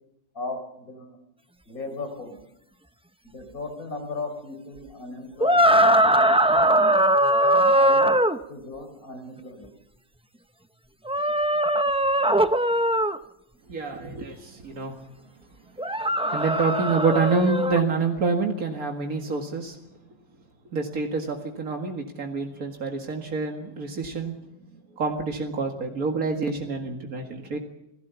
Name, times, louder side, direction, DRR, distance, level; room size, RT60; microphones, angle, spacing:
voice 1, 0.3-1.2 1.7-2.4 3.2-5.7 7.7-8.2 8.5-9.7 22.4-22.5, left 3 dB, 85° left, 6 dB, 4.9 m, -36 dB
sound 1, 5.4-8.4 11.1-13.2 15.8-17.8, right 1 dB, 10° right, 0.3 m, -20 dB
voice 2, 13.7-14.9 16.3-19.8 20.7-24.3 25.0-27.6, right 4 dB, 85° right, 2 dB, 2.4 m, -27 dB
28.0 x 17.0 x 7.0 m, 0.85 s
omnidirectional pair, 1.5 m